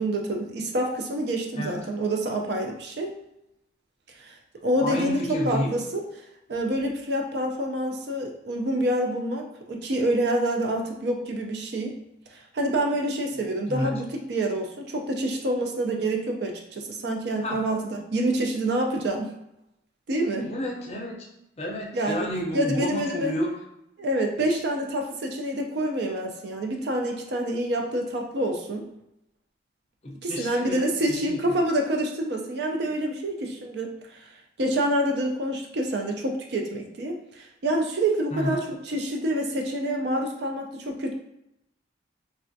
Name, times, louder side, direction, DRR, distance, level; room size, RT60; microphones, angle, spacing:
voice 1, 0.0-3.1 4.2-4.4 4.6-6.0 6.5-11.9 12.3-19.3 20.1-20.5 21.9-22.3 22.5-23.4 24.0-28.9 30.2-34.3 34.6-41.1, right 1 dB, 60° right, 2 dB, 0.4 m, -27 dB
voice 2, 4.8-5.7 13.7-13.9 17.4-17.6 20.4-21.1 21.6-23.5 24.5-24.6 30.0-31.4 38.3-38.6, equal, 35° left, -2 dB, 0.5 m, -30 dB
3.2 x 2.3 x 2.6 m, 0.84 s
head